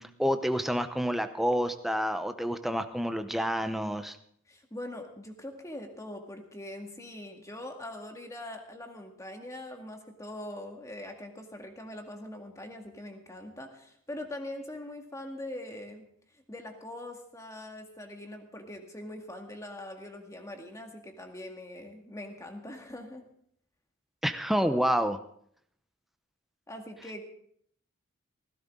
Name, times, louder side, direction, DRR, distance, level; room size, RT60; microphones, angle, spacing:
voice 1, 0.0-4.2 24.2-25.2, equal, ahead, 8 dB, 0.7 m, -28 dB
voice 2, 4.5-16.1 16.5-23.2 26.7-27.2, left 1 dB, 15° left, 3 dB, 1.9 m, -42 dB
17.0 x 15.5 x 3.7 m, 0.65 s
head